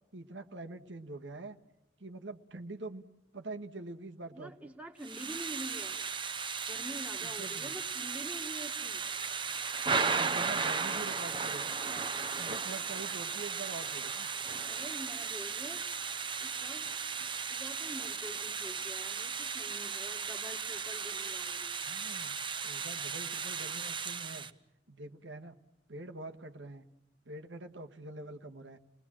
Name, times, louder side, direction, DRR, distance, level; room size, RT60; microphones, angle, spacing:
voice 1, 0.1-1.6 2.0-3.0 3.3-4.7 7.2-7.7 9.9-11.8 12.4-14.3 21.8-22.4 22.6-24.5 24.9-25.6 25.9-26.8 27.2-28.8, right 2 dB, 85° right, 5 dB, 1.6 m, -45 dB
voice 2, 4.3-6.0 6.7-9.1 14.7-15.8 16.4-16.9 17.5-21.9, equal, 10° right, 3 dB, 1.8 m, -46 dB
Thunder / Rain, 5.0-24.5, right 5 dB, 30° right, 1.0 m, -36 dB
30.0 x 21.0 x 7.6 m, 0.97 s
head